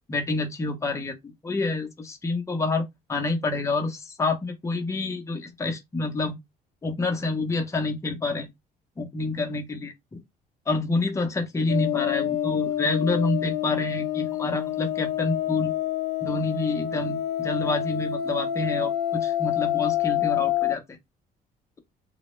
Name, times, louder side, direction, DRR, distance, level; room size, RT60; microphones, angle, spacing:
voice 1, 0.1-6.4 6.8-8.5 9.0-9.9 10.7-15.7 16.2-20.8, left 3 dB, 15° left, 0.6 m, -28 dB
sound 1, 11.7-20.8, left 12 dB, 80° left, 0.5 m, -27 dB
2.1 x 2.0 x 3.0 m
cardioid pair, 110°, 17 cm